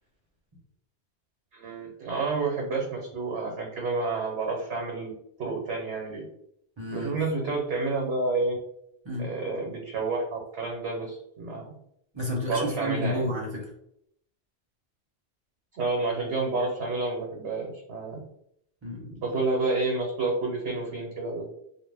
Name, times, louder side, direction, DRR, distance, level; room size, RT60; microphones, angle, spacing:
voice 1, 1.5-5.1 5.4-6.2 6.9-8.6 9.2-11.7 12.4-13.3 15.7-18.2 19.2-21.4, right 3 dB, 90° right, -1 dB, 1.0 m, -29 dB
voice 2, 6.8-7.1 9.0-9.3 12.1-13.7 18.8-19.2, left 1 dB, 30° right, -2 dB, 0.6 m, -31 dB
2.4 x 2.2 x 3.3 m, 0.74 s
omnidirectional pair, 1.1 m